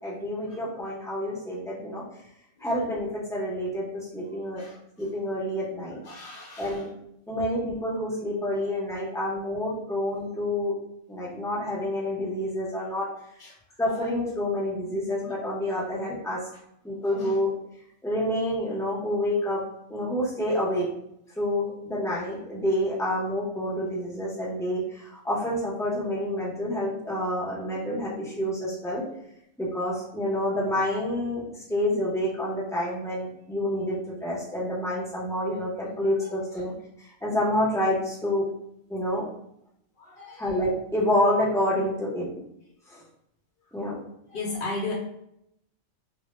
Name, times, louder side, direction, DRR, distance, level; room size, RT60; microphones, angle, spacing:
voice 1, 0.0-2.0 2.6-4.6 5.0-6.0 6.6-6.9 7.3-10.7 11.1-13.0 13.8-16.4 16.8-17.5 18.0-19.6 19.9-20.9 21.4-29.0 29.6-31.4 31.7-36.7 37.2-38.4 38.9-39.2 40.4-42.3 42.9-43.0 43.7-43.9, left 1 dB, 5° left, -6 dB, 0.4 m, -28 dB
voice 2, 4.3-4.8 6.0-6.8 9.1-9.2 13.4-13.5 13.8-13.9 16.5-16.6 17.2-17.3 36.2-36.3 40.0-40.5 44.3-44.9, left 3 dB, 60° left, -3 dB, 0.6 m, -36 dB
2.0 x 2.0 x 3.1 m, 0.77 s
omnidirectional pair, 1.2 m